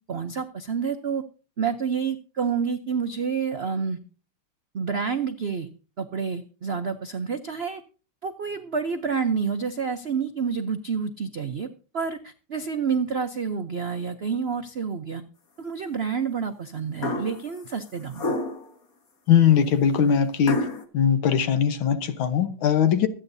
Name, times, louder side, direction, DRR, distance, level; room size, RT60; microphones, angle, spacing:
voice 1, 0.1-1.2 1.6-4.0 4.7-5.7 6.0-7.8 8.2-11.7 11.9-15.2 15.6-18.3, right 6 dB, 75° right, 0.5 m, -28 dB
sound 1, 17.0-17.5 18.1-18.7 20.4-20.8, left 2 dB, 45° left, 1.8 m, -28 dB
voice 2, 19.3-20.6 20.9-23.1, left 8 dB, 75° left, 1.8 m, -20 dB
24.5 x 9.0 x 2.7 m
omnidirectional pair, 2.2 m